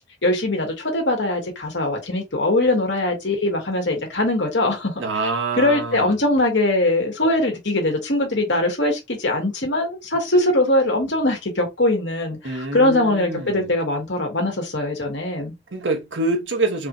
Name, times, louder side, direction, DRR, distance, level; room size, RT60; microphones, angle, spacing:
voice 1, 0.2-4.9 5.6-15.5, left 1 dB, 70° left, 1.8 m, -21 dB
voice 2, 5.0-6.1 12.4-13.7 15.7-16.9, right 2 dB, 85° right, 1.1 m, -26 dB
4.8 x 3.1 x 2.6 m
head